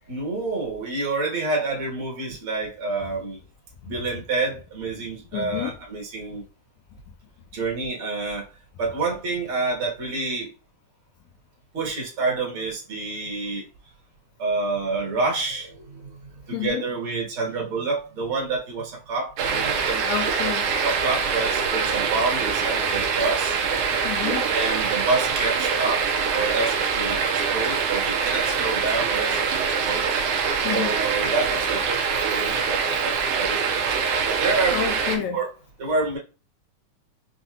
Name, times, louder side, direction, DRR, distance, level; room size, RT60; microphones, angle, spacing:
voice 1, 0.1-3.4 3.9-6.4 7.5-8.5 8.8-10.5 11.7-13.7 14.4-16.2 16.5-20.1 20.8-23.6 24.5-30.0 30.6-34.8 35.1-35.5 35.8-36.2, right 3 dB, 50° right, 1.8 m, -28 dB
voice 2, 5.3-5.7 16.5-16.8 20.1-20.6 24.0-24.4 30.7-30.9 34.7-35.4, left 10 dB, 80° left, 1.8 m, -28 dB
sound 1, 19.4-35.2, right 5 dB, 85° right, 1.3 m, -24 dB
5.8 x 2.8 x 2.4 m
omnidirectional pair, 3.7 m